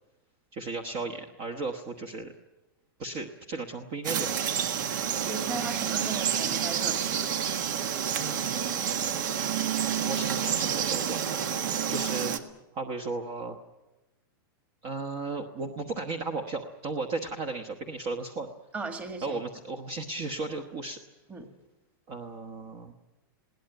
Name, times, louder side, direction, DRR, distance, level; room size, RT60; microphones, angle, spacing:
voice 1, 0.5-2.3 3.0-4.5 8.2-9.3 10.0-12.3 12.7-13.6 14.8-18.5 19.2-21.0 22.1-22.9, right 3 dB, 30° right, 6 dB, 1.2 m, -35 dB
Frog, 4.0-12.4, right 8 dB, 55° right, 1.6 m, -29 dB
voice 2, 5.2-7.3 18.7-19.4 21.3-21.5, right 3 dB, 10° right, 6 dB, 1.7 m, -37 dB
21.0 x 17.5 x 9.2 m, 1.0 s
supercardioid pair, 170°, 12 cm